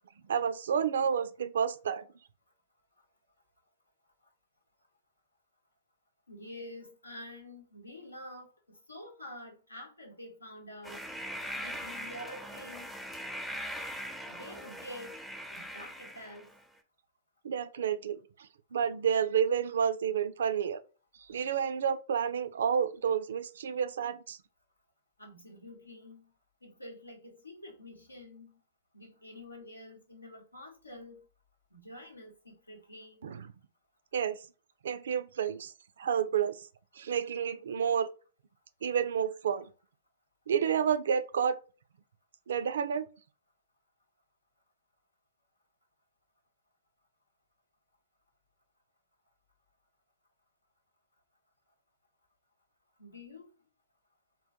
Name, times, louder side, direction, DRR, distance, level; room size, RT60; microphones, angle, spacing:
voice 1, 0.3-2.1 17.4-18.2 18.7-20.8 21.3-24.4 33.2-33.5 34.1-34.4 34.8-35.7 36.0-36.6 37.0-38.1 38.8-39.7 40.5-41.6 42.5-43.1, right 7 dB, 65° right, 0.3 m, -30 dB
voice 2, 6.3-11.0 11.5-13.0 14.3-15.2 15.5-16.5 25.2-26.3 26.6-28.5 28.9-31.2 31.7-33.2 53.0-53.5, left 1 dB, 90° left, 0.9 m, -48 dB
sound 1, 10.8-16.6, equal, ahead, 0.4 m, -41 dB
3.7 x 2.1 x 2.7 m
figure-of-eight pair, 105°, 0 cm